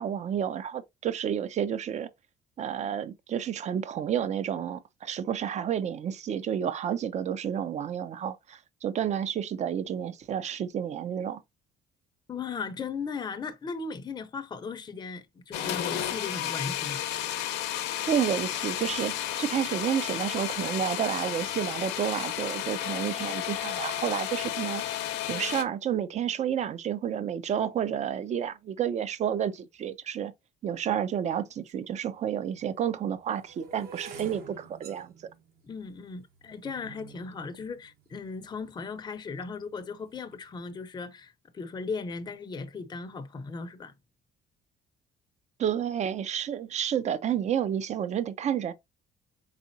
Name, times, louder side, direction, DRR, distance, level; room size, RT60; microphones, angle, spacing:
voice 1, 0.0-2.1 2.6-11.4 18.1-24.8 25.3-30.3 30.6-35.1 45.6-48.7, right 9 dB, 45° right, 0.6 m, -30 dB
voice 2, 12.3-17.1 35.6-43.9, left 4 dB, 25° left, 0.6 m, -37 dB
sound 1, 15.5-25.6, left 12 dB, 90° left, 0.7 m, -32 dB
sound 2, 31.7-31.8 32.5-38.7 39.3-39.7 40.0-40.3, right 5 dB, 65° right, 1.3 m, -49 dB
4.2 x 3.6 x 2.7 m
cardioid pair, 110°, 17 cm